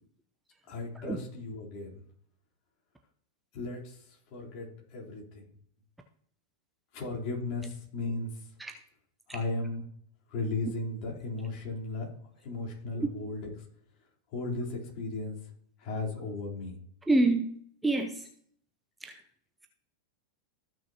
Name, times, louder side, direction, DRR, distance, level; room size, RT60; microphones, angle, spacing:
voice 1, 0.7-1.9 3.5-4.0 4.3-5.4 6.9-8.3 9.3-9.8 10.3-12.1 12.4-13.4 14.3-15.4 15.8-16.8, left 2 dB, 40° left, -3 dB, 3.7 m, -35 dB
voice 2, 17.1-17.5 17.8-18.3 19.0-19.2, right 2 dB, 5° right, 4 dB, 0.8 m, -27 dB
14.5 x 6.1 x 2.9 m, 0.64 s
figure-of-eight pair, 90°, 0 cm